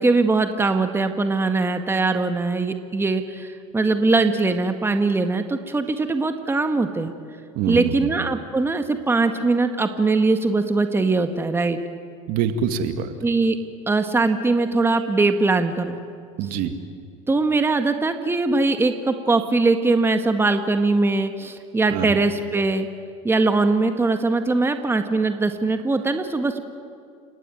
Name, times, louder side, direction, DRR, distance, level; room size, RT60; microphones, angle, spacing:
voice 1, 0.0-7.1 7.7-11.8 13.2-13.6 13.9-16.0 17.3-22.9 23.2-26.6, right 3 dB, 15° right, 7 dB, 1.8 m, -21 dB
voice 2, 7.5-8.3 12.3-13.1 16.4-16.7 21.9-22.2, right 7 dB, 60° right, 8 dB, 2.2 m, -25 dB
30.0 x 18.0 x 9.2 m, 2.3 s
hypercardioid pair, 85°, 17 cm